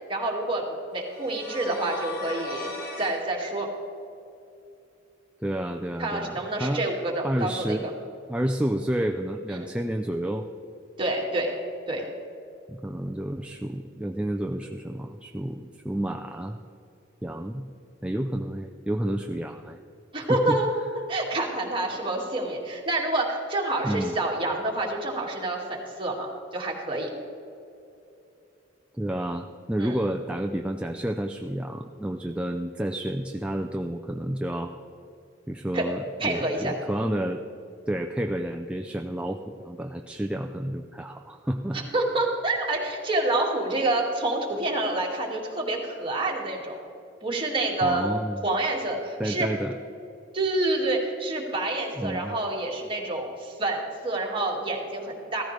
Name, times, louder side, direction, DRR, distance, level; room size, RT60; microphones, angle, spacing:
voice 1, 0.1-2.7 3.0-3.7 6.0-7.9 9.5-9.7 11.0-11.5 11.9-12.1 20.1-20.7 21.1-27.1 29.8-29.9 35.7-35.9 36.2-36.7 41.7-46.8 47.2-48.1 48.4-49.5 50.3-55.4, right 2 dB, 25° right, -2 dB, 2.1 m, -28 dB
sound 1, 1.1-3.2, left 3 dB, 50° left, 1.8 m, -37 dB
voice 2, 5.4-6.8 7.2-7.9 8.3-10.5 12.7-16.6 17.2-17.6 18.0-19.8 20.2-20.6 23.8-24.1 28.9-34.8 35.5-37.4 37.9-41.8 47.8-48.4 49.2-49.8 52.0-52.3, right 1 dB, 5° right, 4 dB, 0.4 m, -30 dB
15.5 x 14.0 x 3.3 m, 2.7 s
head